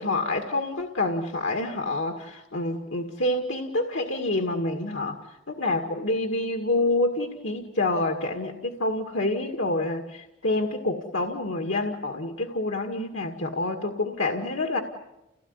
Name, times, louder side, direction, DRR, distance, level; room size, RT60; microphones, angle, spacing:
voice 1, 0.0-5.2 5.5-14.8, left 2 dB, 85° left, 4 dB, 2.0 m, -27 dB
29.5 x 17.5 x 9.7 m, 0.93 s
head